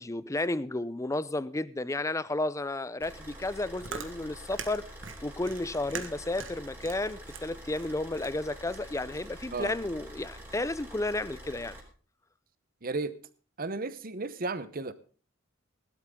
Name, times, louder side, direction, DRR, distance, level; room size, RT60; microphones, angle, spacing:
voice 1, 0.0-4.9 5.2-11.8, left 2 dB, 15° left, 0.5 m, -32 dB
Car / Idling, 3.0-11.8, equal, 10° right, 3.4 m, -47 dB
Chewing mastication, 3.6-9.9, right 5 dB, 70° right, 1.6 m, -44 dB
voice 2, 12.8-13.1 13.6-14.9, right 3 dB, 45° right, 0.9 m, -33 dB
16.5 x 12.0 x 3.7 m
head